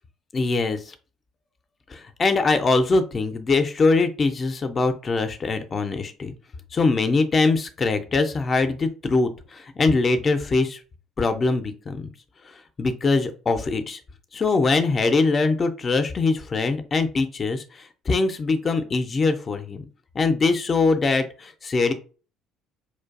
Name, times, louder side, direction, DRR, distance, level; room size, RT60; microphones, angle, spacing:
voice 1, 0.3-0.9 1.9-6.3 6.7-10.8 11.2-12.1 12.8-14.0 14.3-19.8 20.1-21.9, left 3 dB, 35° left, 9 dB, 0.4 m, -22 dB
4.3 x 2.5 x 2.4 m, 0.36 s
figure-of-eight pair, 55°, 0 cm